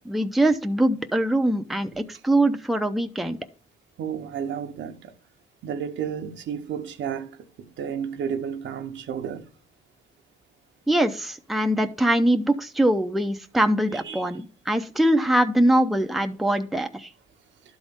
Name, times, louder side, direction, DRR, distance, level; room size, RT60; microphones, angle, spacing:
voice 1, 0.1-3.4 10.9-17.1, right 1 dB, ahead, 0.6 m, -22 dB
voice 2, 4.0-5.1 5.6-7.3 7.6-9.5 13.9-14.2, right 8 dB, 70° right, 0.8 m, -32 dB
11.5 x 4.0 x 3.5 m
cardioid pair, 90°, 20 cm